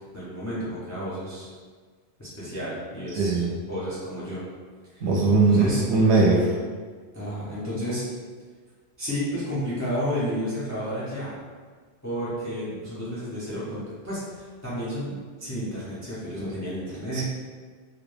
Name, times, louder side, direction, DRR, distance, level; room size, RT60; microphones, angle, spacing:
voice 1, 0.1-1.5 2.2-4.4 4.9-5.0 5.5-5.8 7.1-8.0 9.0-11.4 12.0-17.2, equal, 20° left, -9 dB, 0.4 m, -31 dB
voice 2, 3.2-3.5 5.0-6.5 17.1-17.2, right 3 dB, 75° right, -2 dB, 0.8 m, -20 dB
2.2 x 2.1 x 3.2 m, 1.5 s
omnidirectional pair, 1.1 m